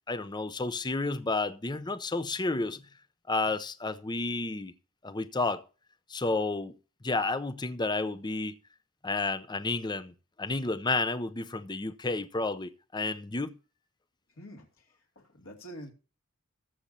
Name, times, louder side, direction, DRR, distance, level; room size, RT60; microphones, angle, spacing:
voice 1, 0.1-2.8 3.3-4.7 5.0-5.6 6.1-6.7 7.0-8.6 9.0-13.6, left 3 dB, 20° left, 0.6 m, -31 dB
voice 2, 14.4-15.9, equal, 65° left, 2.8 m, -47 dB
20.0 x 7.2 x 2.8 m
head